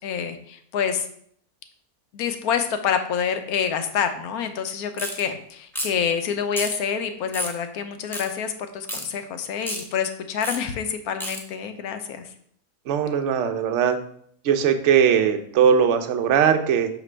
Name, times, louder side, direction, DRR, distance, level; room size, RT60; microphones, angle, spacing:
voice 1, 0.0-1.1 2.1-12.3, left 7 dB, 75° left, 8 dB, 1.2 m, -27 dB
sound 1, 5.0-5.2 5.7-6.0 6.5-6.8 7.3-7.6 8.1-8.3 8.9-9.1 9.6-9.8 10.4-10.6 11.2-11.4, equal, ahead, 0.7 m, -30 dB
voice 2, 12.9-14.0 14.4-16.9, right 7 dB, 60° right, 7 dB, 0.8 m, -20 dB
6.0 x 5.1 x 3.2 m, 0.65 s
omnidirectional pair, 1.6 m